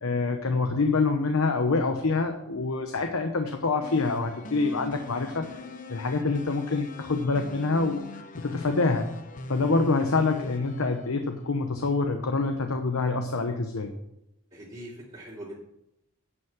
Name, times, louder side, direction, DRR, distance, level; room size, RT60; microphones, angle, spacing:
voice 1, 0.0-5.5 5.9-8.0 8.4-9.1 9.5-13.9, left 3 dB, 90° left, 5 dB, 0.9 m, -26 dB
sound 1, 3.8-12.0, left 2 dB, 40° left, 0.8 m, -42 dB
voice 2, 14.5-15.6, right 1 dB, 25° right, -10 dB, 2.9 m, -42 dB
9.7 x 5.5 x 7.3 m, 0.85 s
head